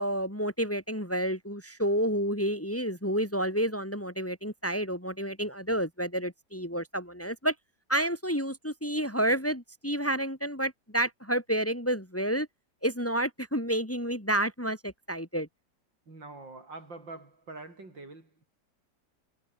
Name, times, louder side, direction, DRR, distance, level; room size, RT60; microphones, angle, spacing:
voice 1, 0.0-7.5 7.9-12.5 12.8-15.5, right 1 dB, 5° left, 4.0 m, -30 dB
voice 2, 16.1-18.4, right 3 dB, 85° right, 7.0 m, -45 dB
omnidirectional pair, 2.0 m